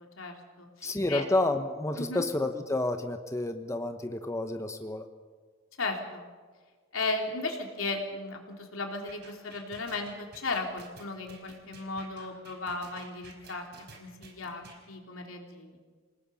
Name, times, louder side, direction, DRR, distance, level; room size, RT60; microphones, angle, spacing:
voice 1, 0.0-1.2 2.0-2.2 5.8-6.2 6.9-13.7 14.0-14.6 14.9-15.8, left 3 dB, 90° left, 2 dB, 3.3 m, -35 dB
voice 2, 0.8-5.0, left 2 dB, 15° left, 7 dB, 1.0 m, -30 dB
sound 1, 9.1-14.8, right 3 dB, 55° right, 4.7 m, -51 dB
27.5 x 18.5 x 5.6 m, 1.5 s
head